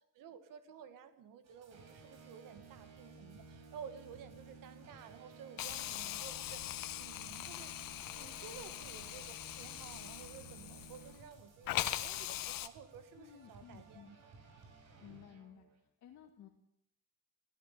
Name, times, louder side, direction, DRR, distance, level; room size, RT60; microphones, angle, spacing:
voice 1, 0.1-14.3, right 7 dB, 70° right, 10 dB, 2.2 m, -53 dB
sound 1, 1.4-15.8, right 4 dB, 50° right, 5.9 m, -56 dB
Hiss, 5.6-11.3 11.7-12.7, left 14 dB, 80° left, 1.6 m, -41 dB
voice 2, 13.1-14.2 15.0-15.7 16.0-16.5, left 10 dB, 55° left, 3 dB, 2.1 m, -55 dB
24.5 x 16.5 x 8.5 m, 0.74 s
cardioid pair, 180°, 34 cm